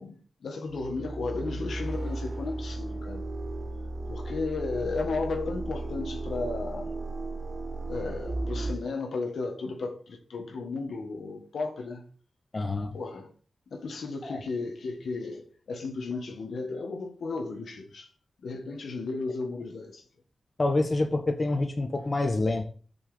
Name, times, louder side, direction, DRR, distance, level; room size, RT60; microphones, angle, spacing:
voice 1, 0.0-3.3 4.1-7.0 7.9-12.0 12.9-13.3 13.7-18.1 18.4-20.0, left 3 dB, 85° left, 1.7 m, -34 dB
sound 1, 0.7-8.7, right 2 dB, 50° right, 1.7 m, -35 dB
voice 2, 12.5-12.9 14.3-14.4 20.6-22.7, left 2 dB, 40° left, 1.5 m, -27 dB
6.5 x 6.3 x 7.1 m
cardioid pair, 65°, 0 cm